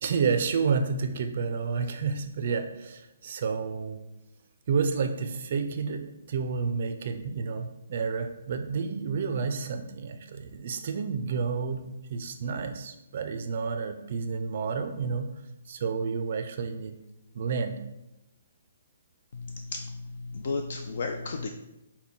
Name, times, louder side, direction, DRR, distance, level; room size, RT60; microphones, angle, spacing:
voice 1, 0.0-4.0 4.7-15.3 15.7-17.0 17.3-17.8, right 5 dB, 50° right, 8 dB, 0.4 m, -30 dB
voice 2, 19.3-21.5, left 3 dB, 60° left, 4 dB, 0.3 m, -34 dB
5.7 x 2.1 x 3.6 m, 0.92 s
hypercardioid pair, 155°, 0 cm